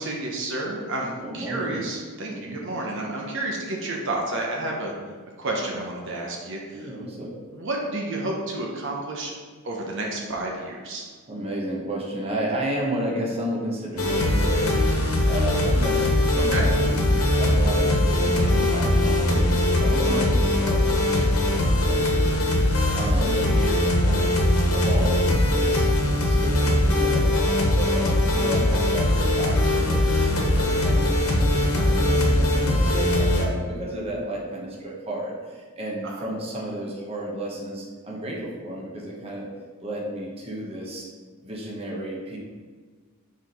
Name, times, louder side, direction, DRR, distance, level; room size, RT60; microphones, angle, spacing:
voice 1, 0.0-4.9 5.4-6.9 7.5-9.3 9.6-11.1 16.5-16.6 36.0-36.3, right 2 dB, 60° right, -1 dB, 1.0 m, -30 dB
voice 2, 1.2-1.8 2.3-2.6 6.7-7.4 11.3-14.8 15.3-17.0 17.3-24.3 24.7-25.9 26.2-39.5 39.8-41.1 41.4-42.4, right 1 dB, 25° right, -3 dB, 1.0 m, -32 dB
sound 1, 14.0-33.5, left 1 dB, 70° left, 1.2 m, -21 dB
4.7 x 4.2 x 5.4 m, 1.5 s
head